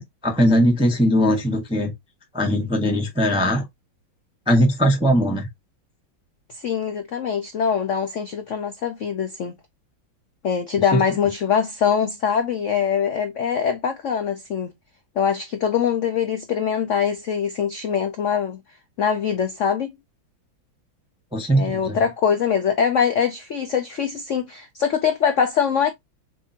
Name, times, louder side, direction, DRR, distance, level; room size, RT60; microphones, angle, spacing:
voice 1, 0.0-1.9 2.3-3.7 4.5-5.5 10.9-11.0 21.3-22.0, equal, 5° right, 0.8 m, -20 dB
voice 2, 6.5-9.5 10.4-14.7 15.2-18.6 19.0-19.9 21.5-25.9, left 7 dB, 85° left, 0.6 m, -23 dB
6.5 x 2.7 x 2.8 m
omnidirectional pair, 2.1 m